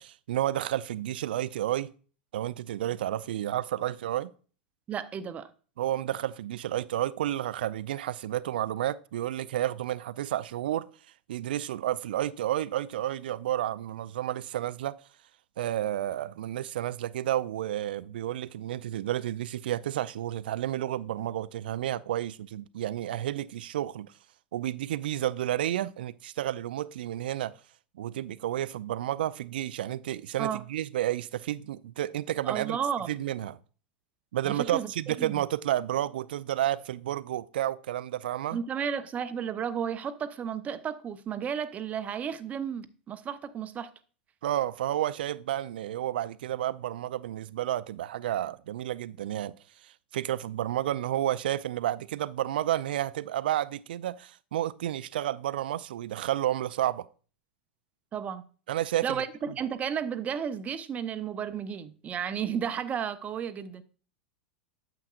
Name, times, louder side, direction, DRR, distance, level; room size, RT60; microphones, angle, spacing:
voice 1, 0.0-1.9 2.3-4.3 5.8-10.9 11.3-15.0 15.6-24.1 24.5-27.5 28.0-32.8 33.1-33.6 34.3-38.6 44.4-49.5 50.1-57.1 58.7-59.2, right 12 dB, 65° right, 0.4 m, -31 dB
voice 2, 4.9-5.5 30.4-30.6 32.4-33.2 34.4-35.5 38.5-43.9 58.1-58.4 59.0-63.8, right 8 dB, 25° right, 0.7 m, -33 dB
8.9 x 7.7 x 2.4 m
figure-of-eight pair, 90°, 5 cm